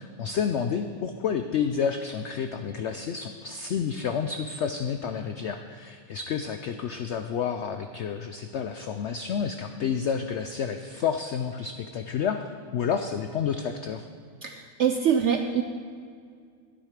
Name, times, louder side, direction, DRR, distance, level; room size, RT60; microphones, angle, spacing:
voice 1, 0.0-14.1, left 7 dB, 80° left, 7 dB, 0.6 m, -30 dB
voice 2, 14.4-15.6, right 8 dB, 75° right, 6 dB, 0.6 m, -24 dB
12.0 x 9.9 x 5.0 m, 2.2 s
omnidirectional pair, 1.7 m